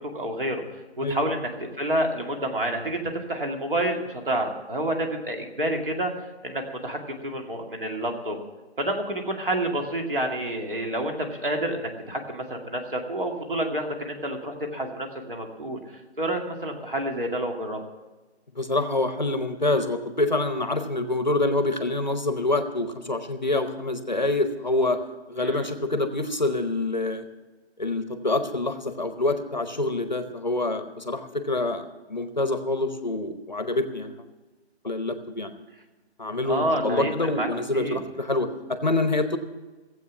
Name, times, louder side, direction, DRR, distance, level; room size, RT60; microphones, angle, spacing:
voice 1, 0.1-1.5 1.8-3.0 3.3-6.1 6.4-8.4 8.8-15.8 16.2-17.8 25.4-25.7 36.4-37.5 37.7-38.0, right 1 dB, 50° right, 2 dB, 2.3 m, -28 dB
voice 2, 18.5-25.0 25.3-27.2 27.8-34.1 34.8-35.5 36.2-39.4, left 2 dB, 40° left, 9 dB, 0.9 m, -26 dB
16.5 x 8.0 x 7.0 m, 1.2 s
figure-of-eight pair, 180°, 34 cm